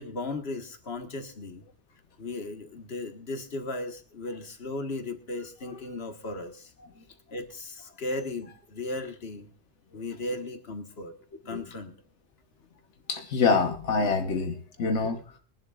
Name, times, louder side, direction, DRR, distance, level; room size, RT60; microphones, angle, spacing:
voice 1, 0.0-1.7 2.2-6.7 7.3-9.5 9.9-11.1 11.5-12.0, left 2 dB, 60° left, 6 dB, 1.8 m, -36 dB
voice 2, 13.1-15.4, left 4 dB, 90° left, 5 dB, 1.4 m, -26 dB
22.5 x 11.0 x 2.4 m, 0.42 s
omnidirectional pair, 1.2 m